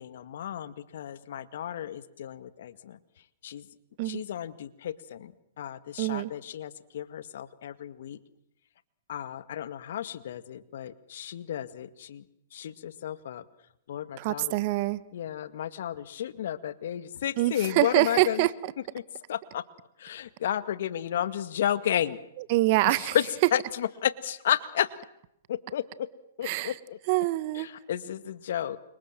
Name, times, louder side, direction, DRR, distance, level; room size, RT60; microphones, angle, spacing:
voice 1, 0.0-3.0 3.4-3.7 4.0-8.2 9.1-12.3 12.5-13.4 13.9-14.6 15.1-18.5 18.9-19.0 19.3-19.6 20.0-22.2 22.9-24.9 25.5-26.1 26.4-27.0 27.5-28.8, left 10 dB, 65° left, 2.0 m, -32 dB
voice 2, 6.0-6.3 14.2-15.0 17.4-18.5 22.5-23.1 26.4-26.7 27.1-27.7, right 19 dB, 45° right, 1.3 m, -25 dB
29.5 x 26.5 x 7.6 m
hypercardioid pair, 125°, 0 cm